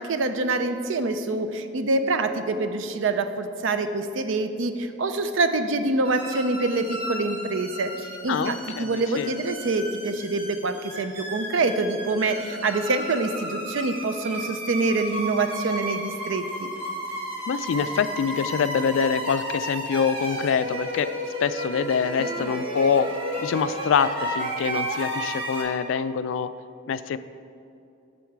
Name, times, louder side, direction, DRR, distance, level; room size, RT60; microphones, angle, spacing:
voice 1, 0.0-16.7 22.2-22.5, right 3 dB, 70° right, 9 dB, 0.5 m, -26 dB
sound 1, 6.0-25.6, equal, 25° right, 1.2 m, -33 dB
voice 2, 8.3-9.3 17.5-21.1 21.4-23.1 23.4-26.5 26.9-27.2, left 6 dB, 75° left, 13 dB, 0.3 m, -25 dB
8.3 x 6.4 x 4.6 m, 2.6 s
head